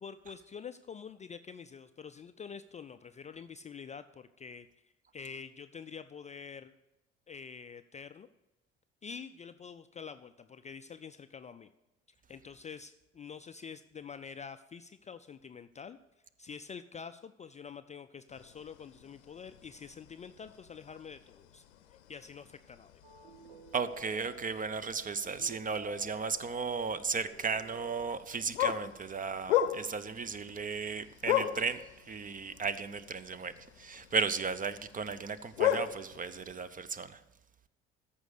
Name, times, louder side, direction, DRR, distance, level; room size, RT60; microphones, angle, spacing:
voice 1, 0.0-4.7 5.1-6.7 7.3-8.3 9.0-11.7 12.3-16.0 16.4-21.6 22.1-22.9, left 6 dB, 20° left, 11 dB, 0.4 m, -47 dB
sound 1, 18.3-36.5, left 11 dB, 75° left, 0.7 m, -38 dB
sound 2, 23.0-28.1, right 1 dB, 70° right, 1.5 m, -51 dB
voice 2, 23.7-37.2, right 5 dB, 25° right, 15 dB, 0.6 m, -35 dB
14.0 x 5.2 x 6.6 m, 0.96 s
figure-of-eight pair, 55°, 34 cm